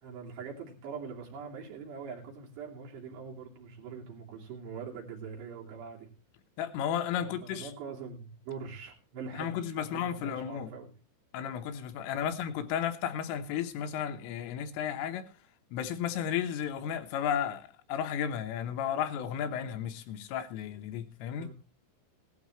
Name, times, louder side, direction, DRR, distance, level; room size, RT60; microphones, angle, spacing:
voice 1, 0.0-6.1 7.2-10.9 19.5-19.7 21.3-21.5, right 5 dB, 60° right, 4.7 m, -43 dB
voice 2, 6.6-7.7 9.3-10.7 11.3-15.3 15.7-21.5, left 9 dB, 85° left, 3.7 m, -33 dB
18.0 x 12.0 x 3.2 m
omnidirectional pair, 5.7 m